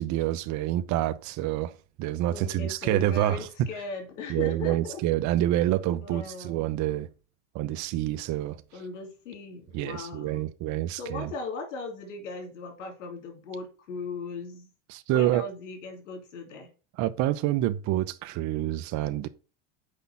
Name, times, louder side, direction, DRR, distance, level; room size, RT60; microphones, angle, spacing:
voice 1, 0.0-1.7 2.0-3.7 4.3-7.1 7.5-8.6 9.7-11.3 14.9-15.4 17.0-19.3, right 13 dB, 55° right, 0.8 m, -27 dB
voice 2, 2.3-5.0 6.0-6.7 8.7-10.4 10.9-14.7 15.1-16.7, left 3 dB, 90° left, 3.0 m, -38 dB
6.6 x 5.2 x 5.7 m
supercardioid pair, 105°, 36 cm